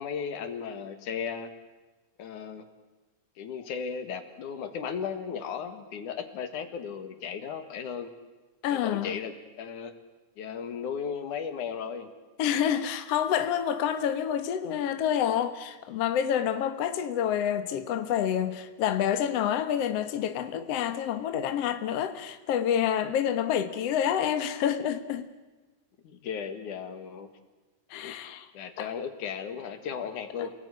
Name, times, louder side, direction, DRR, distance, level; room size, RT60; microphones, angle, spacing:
voice 1, 0.0-1.5 2.2-2.7 3.4-8.1 8.7-9.9 10.4-12.1 26.0-27.3 27.9-28.1 28.5-30.5, left 7 dB, 80° left, 3.4 m, -36 dB
voice 2, 8.6-9.2 12.4-25.3 27.9-28.5 28.8-28.9, left 9 dB, 60° left, 2.2 m, -28 dB
29.0 x 19.5 x 9.9 m
omnidirectional pair, 3.4 m